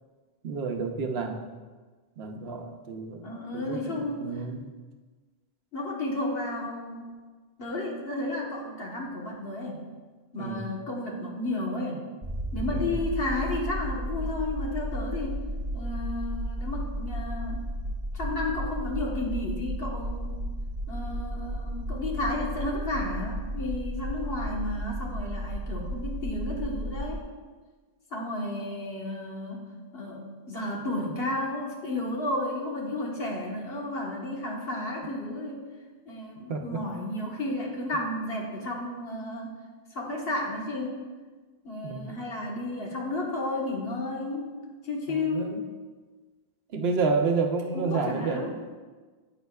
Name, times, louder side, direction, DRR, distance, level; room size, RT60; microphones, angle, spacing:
voice 1, 0.4-1.5 2.2-3.2 3.5-4.7 10.4-10.7 12.7-12.9 36.5-36.8 41.8-42.2 45.1-45.5 46.7-48.6, right 4 dB, 75° right, 4 dB, 1.0 m, -30 dB
voice 2, 3.2-4.4 5.7-7.1 7.6-9.8 10.3-12.0 12.5-15.4 15.7-17.6 18.1-20.3 20.9-27.3 28.1-35.6 36.1-39.6 39.9-41.0 41.6-44.5 44.8-45.6 47.7-48.5, left 2 dB, 70° left, -2 dB, 1.6 m, -32 dB
sound 1, 12.2-27.2, equal, 40° right, 1.1 m, -33 dB
10.5 x 7.5 x 2.3 m, 1.4 s
omnidirectional pair, 1.0 m